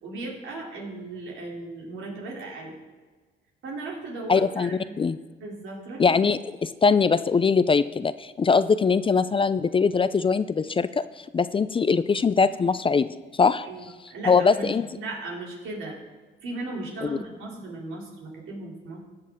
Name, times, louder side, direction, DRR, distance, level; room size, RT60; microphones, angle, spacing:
voice 1, 0.0-2.7 3.6-5.0 5.4-6.2 13.6-16.0 16.4-19.0, right 2 dB, 80° right, -1 dB, 3.1 m, -37 dB
voice 2, 4.3-4.7 5.0-5.2 6.0-11.0 11.3-13.1 13.4-13.7 14.2-14.8 17.0-17.1, left 5 dB, 25° left, 14 dB, 0.4 m, -21 dB
19.0 x 6.6 x 3.6 m, 1.4 s
cardioid pair, 90°, 20 cm